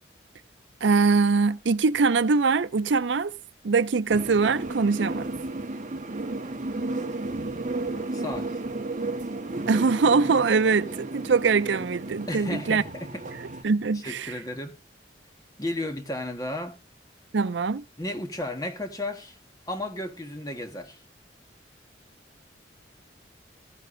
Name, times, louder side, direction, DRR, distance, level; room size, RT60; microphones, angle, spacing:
voice 1, 0.8-3.3 3.6-5.4 9.7-12.8 13.6-14.3 17.3-17.8, right 4 dB, 80° right, 0.6 m, -22 dB
sound 1, 4.1-13.6, right 2 dB, 45° right, 1.5 m, -33 dB
voice 2, 8.1-8.5 12.3-13.2 13.9-14.7 15.6-16.8 18.0-19.4 19.7-21.0, left 1 dB, 20° left, 1.6 m, -33 dB
15.0 x 10.0 x 2.7 m
head